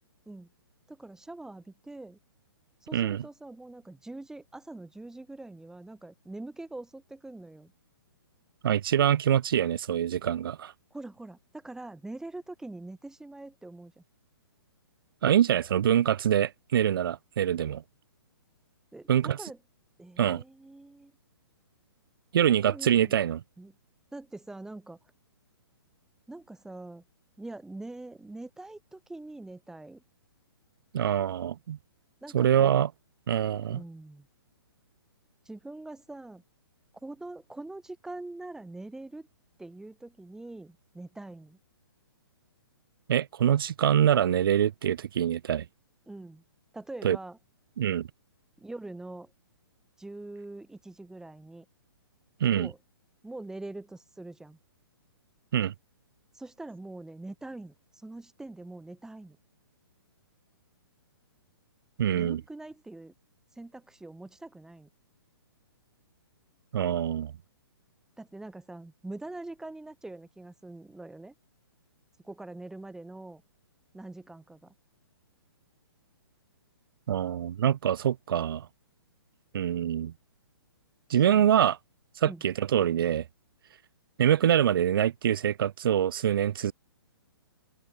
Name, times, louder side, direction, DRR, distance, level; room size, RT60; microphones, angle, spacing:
voice 1, 0.9-2.2 2.8-7.7 10.9-14.0 18.9-19.6 20.0-21.1 22.5-23.2 23.6-23.7 24.1-25.0 26.3-27.0 27.4-30.0 32.2-32.8 33.5-34.3 35.4-36.4 37.0-39.3 39.6-41.6 46.1-46.4 46.7-47.4 48.6-49.3 50.0-51.6 52.5-52.8 53.2-54.6 56.3-59.4 62.1-63.1 63.6-64.9 68.2-71.3 72.2-73.4 73.9-74.7 81.1-81.5 82.2-82.4, right 2 dB, 5° right, 4.8 m, -43 dB
voice 2, 2.9-3.2 8.6-10.7 15.2-17.8 19.1-19.4 20.2-20.4 22.3-23.4 30.9-31.8 32.3-32.9 33.3-33.8 43.1-45.7 47.0-47.2 47.8-48.1 52.4-52.7 55.5-55.7 62.0-62.4 66.7-67.3 77.1-78.7 79.5-80.1 81.1-81.8 82.2-83.2 84.2-86.7, right 10 dB, 65° right, 0.4 m, -25 dB
open air
hypercardioid pair, 130°, 13 cm